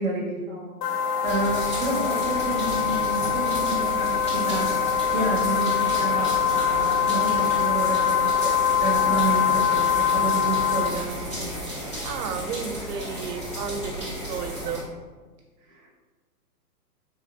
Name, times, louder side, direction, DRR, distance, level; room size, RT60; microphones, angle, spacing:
voice 1, 0.0-4.8 5.1-8.5 8.8-11.5 15.7-15.9, right 2 dB, 30° right, -2 dB, 0.7 m, -30 dB
sound 1, 0.8-10.9, left 8 dB, 70° left, 0.6 m, -23 dB
sound 2, 1.2-14.8, equal, 20° left, 0.4 m, -34 dB
voice 2, 12.0-14.9, right 6 dB, 75° right, 7 dB, 0.6 m, -33 dB
3.5 x 3.2 x 2.3 m, 1.4 s
hypercardioid pair, 150°, 48 cm